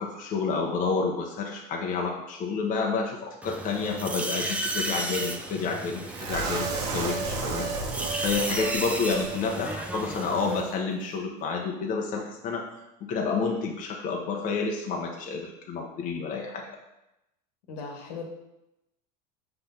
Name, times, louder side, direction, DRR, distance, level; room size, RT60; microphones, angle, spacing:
voice 1, 0.0-6.7 6.9-7.9 8.2-12.6 13.0-16.7, left 4 dB, 40° left, 1 dB, 0.9 m, -29 dB
sound 1, 3.4-10.6, right 2 dB, 5° right, 0.6 m, -34 dB
sound 2, 6.1-9.3 9.6-9.7 10.1-10.2, right 4 dB, 75° right, 1.1 m, -32 dB
voice 2, 17.7-18.2, left 5 dB, 80° left, 2 dB, 1.4 m, -37 dB
5.7 x 3.4 x 5.6 m, 0.91 s
supercardioid pair, 125°, 21 cm